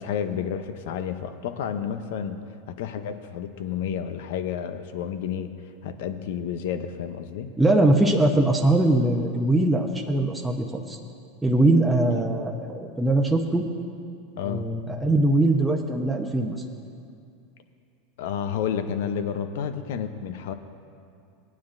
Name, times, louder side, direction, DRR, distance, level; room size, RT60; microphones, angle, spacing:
voice 1, 0.0-2.4 2.7-5.5 5.8-7.5 12.1-12.2 14.4-14.6 18.2-20.5, left 8 dB, 75° left, 10 dB, 0.7 m, -30 dB
voice 2, 7.6-11.0 11.4-13.6 14.4-16.6, right 2 dB, 5° right, 0 dB, 0.8 m, -21 dB
18.5 x 9.4 x 2.6 m, 2.4 s
supercardioid pair, 115°, 0 cm